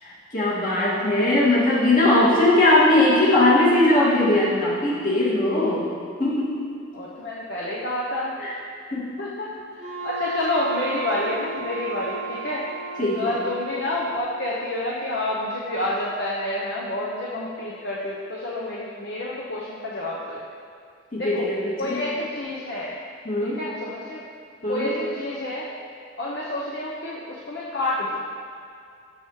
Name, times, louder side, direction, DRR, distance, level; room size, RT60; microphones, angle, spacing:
voice 1, 0.0-5.9 6.2-6.6 8.4-8.5 8.9-9.1 13.0-13.4 21.1-21.6 21.8-22.0 23.2-23.6 24.6-24.9, left 2 dB, 45° left, -8 dB, 2.2 m, -20 dB
voice 2, 6.9-8.4 9.2-12.6 13.1-20.4 21.2-21.5 21.8-22.9 23.4-24.2 24.7-25.7 26.2-28.2, left 1 dB, 60° left, -5 dB, 0.9 m, -29 dB
Wind instrument woodwind instrument, 9.8-14.5, right 5 dB, 35° right, 0.9 m, -34 dB
13.5 x 5.8 x 3.2 m, 2.4 s
head